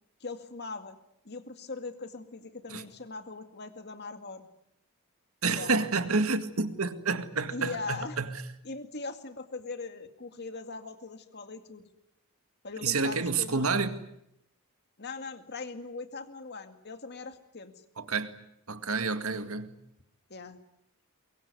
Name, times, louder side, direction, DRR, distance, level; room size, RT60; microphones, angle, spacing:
voice 1, 0.2-1.0 1.2-4.5 5.5-5.8 7.5-8.2 8.6-11.8 12.6-13.8 15.0-17.7 19.3-19.4 20.3-20.6, left 3 dB, 50° left, 2.2 m, -40 dB
voice 2, 5.4-8.3 12.8-14.0 18.0-18.4 18.7-19.7, right 4 dB, 70° right, 2.0 m, -29 dB
23.5 x 23.0 x 9.6 m
head